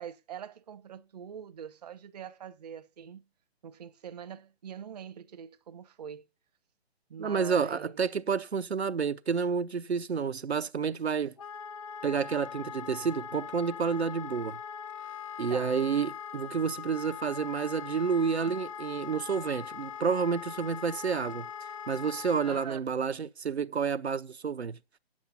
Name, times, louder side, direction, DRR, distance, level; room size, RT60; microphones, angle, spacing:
voice 1, 0.0-3.2 3.6-6.2 7.1-8.0 15.5-15.8 22.4-22.8, right 8 dB, 40° right, 0.8 m, -43 dB
voice 2, 7.2-11.4 12.0-14.6 15.4-21.5 21.9-24.8, right 6 dB, 75° right, 0.7 m, -30 dB
Wind instrument woodwind instrument, 11.4-22.7, left 8 dB, 30° left, 0.6 m, -41 dB
9.7 x 7.3 x 5.6 m
figure-of-eight pair, 140°, 32 cm